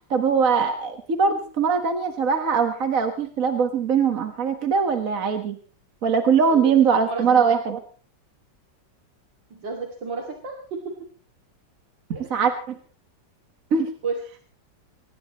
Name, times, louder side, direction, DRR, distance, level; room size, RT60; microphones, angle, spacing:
voice 1, 0.1-5.6 6.0-7.8 12.3-12.8 13.7-13.9, right 6 dB, 50° right, 6 dB, 1.8 m, -21 dB
voice 2, 7.0-7.6 9.5-10.9 12.1-12.3 14.0-14.2, right 4 dB, 85° right, 1 dB, 3.2 m, -32 dB
23.0 x 19.5 x 3.1 m, 0.39 s
omnidirectional pair, 1.9 m